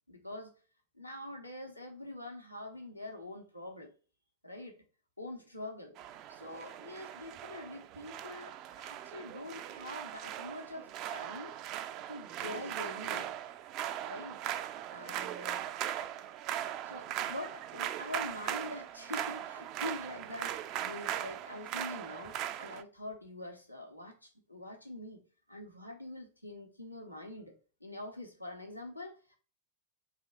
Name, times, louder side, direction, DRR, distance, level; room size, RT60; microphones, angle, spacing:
voice 1, 0.1-0.5 0.9-3.9 4.4-4.8 5.2-5.9 6.3-11.5 12.1-13.3 14.0-14.4 14.9-15.7 16.8-25.2 25.5-29.4, left 1 dB, 90° left, 2 dB, 0.9 m, -45 dB
sound 1, 6.0-22.8, right 11 dB, 40° right, 0.3 m, -39 dB
4.2 x 2.9 x 2.8 m, 0.37 s
figure-of-eight pair, 90°, 0 cm